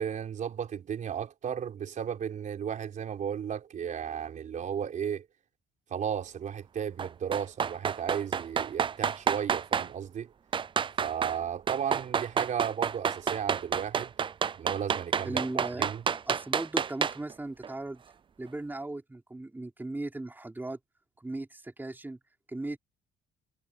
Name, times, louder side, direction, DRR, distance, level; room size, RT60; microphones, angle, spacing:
voice 1, 0.0-5.3 5.9-10.3 11.0-14.1 14.6-16.0, right 8 dB, 50° right, 4.2 m, -34 dB
sound 1, 7.0-9.9 10.5-11.4 11.7-17.3 17.6-17.7, right 7 dB, 30° right, 0.5 m, -29 dB
voice 2, 15.2-18.0 18.4-20.8 21.2-22.2 22.5-22.8, right 2 dB, 10° right, 3.9 m, -37 dB
cardioid pair, 110°, 17 cm